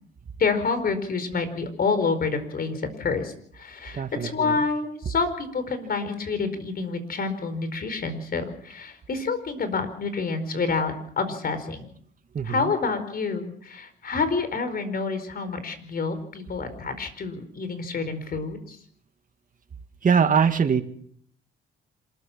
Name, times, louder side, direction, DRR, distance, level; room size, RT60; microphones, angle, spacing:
voice 1, 0.4-11.8 12.4-18.8, left 4 dB, 50° left, 11 dB, 4.7 m, -28 dB
voice 2, 4.0-4.5 12.3-12.7 20.0-20.8, right 6 dB, 40° right, 7 dB, 2.2 m, -22 dB
26.5 x 14.5 x 7.5 m, 0.65 s
cardioid pair, 90°, 20 cm